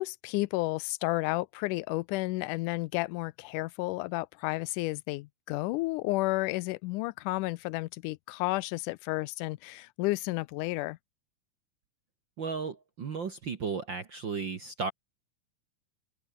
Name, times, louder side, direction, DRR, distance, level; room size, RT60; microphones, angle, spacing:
voice 1, 0.0-11.0, left 21 dB, 80° left, 2.0 m, -32 dB
voice 2, 12.4-14.9, right 5 dB, 45° right, 1.7 m, -34 dB
open air
omnidirectional pair, 3.9 m